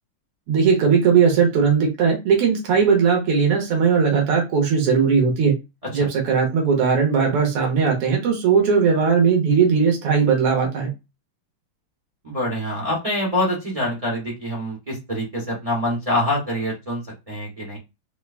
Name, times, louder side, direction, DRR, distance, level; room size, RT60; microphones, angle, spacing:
voice 1, 0.5-5.6 5.9-10.9, right 6 dB, 85° right, 1 dB, 2.0 m, -18 dB
voice 2, 12.2-17.0 17.3-17.8, left 1 dB, 30° right, -3 dB, 0.7 m, -25 dB
4.7 x 2.2 x 2.4 m, 0.25 s
omnidirectional pair, 2.4 m